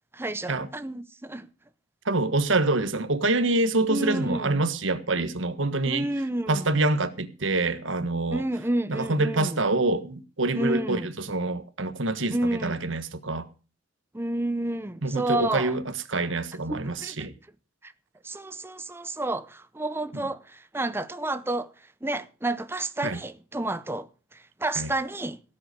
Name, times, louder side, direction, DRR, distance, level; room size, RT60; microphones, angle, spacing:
voice 1, 0.1-1.5 3.9-4.6 5.8-6.8 8.3-9.6 10.5-11.1 12.3-12.8 14.1-15.8 16.7-17.3 17.8-17.9 18.2-25.4, right 1 dB, 10° right, 0.7 m, -30 dB
voice 2, 2.0-6.1 6.5-8.4 8.9-12.4 12.6-13.5 15.0-15.8 16.1-17.3 23.0-23.2 24.7-24.9, right 2 dB, 75° right, 1.6 m, -26 dB
17.5 x 8.0 x 6.8 m
head